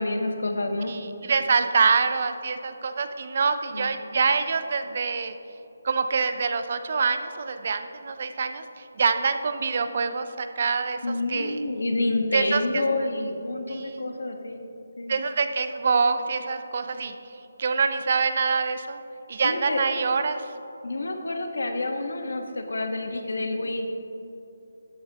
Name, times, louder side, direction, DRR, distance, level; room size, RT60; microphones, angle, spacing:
voice 1, 0.0-1.0 3.7-3.9 11.0-14.6 15.0-15.2 19.4-19.9 20.8-23.9, left 2 dB, 90° left, 5 dB, 1.3 m, -28 dB
voice 2, 0.9-5.3 5.8-11.0 11.3-11.6 12.3-12.8 13.7-14.0 15.1-17.2 17.6-19.0 19.3-20.4, right 5 dB, 45° right, 9 dB, 0.6 m, -25 dB
12.5 x 9.8 x 2.9 m, 3.0 s
hypercardioid pair, 170°, 0 cm